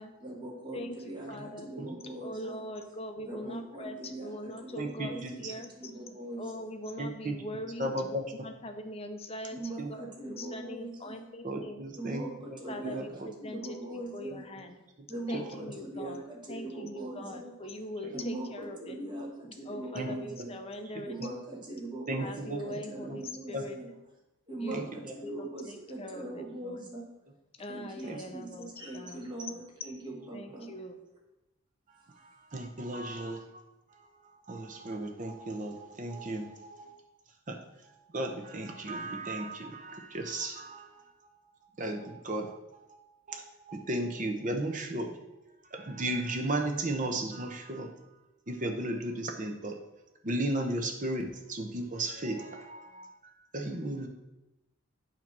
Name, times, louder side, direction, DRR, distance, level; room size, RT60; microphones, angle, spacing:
voice 1, 0.2-2.6 3.3-6.7 9.5-11.2 12.0-13.0 13.4-14.4 15.1-17.5 18.1-20.5 21.1-23.9 24.5-27.1 27.7-30.7, right 2 dB, 20° right, -3 dB, 1.3 m, -41 dB
voice 2, 0.7-1.7 2.2-5.7 6.4-11.8 12.7-14.8 15.3-16.2 16.5-19.0 19.6-21.2 22.2-23.8 24.6-24.9 25.2-26.8 27.6-29.2 30.3-31.0, left 1 dB, 30° left, 6 dB, 0.6 m, -42 dB
voice 3, 4.8-5.5 7.0-7.3 7.8-8.2 9.8-9.9 11.4-12.2 12.8-13.0 15.3-15.4 19.9-20.1 21.2-21.3 22.1-22.6 23.1-23.2 23.5-23.6 24.7-25.1 28.0-28.2 32.5-33.6 34.5-36.9 37.5-37.6 38.1-40.9 41.8-42.5 42.9-43.0 43.3-43.4 43.7-45.1 45.7-47.9 48.5-49.8 50.2-54.1, right 1 dB, 40° right, 3 dB, 0.8 m, -35 dB
8.7 x 2.9 x 6.0 m, 0.94 s
head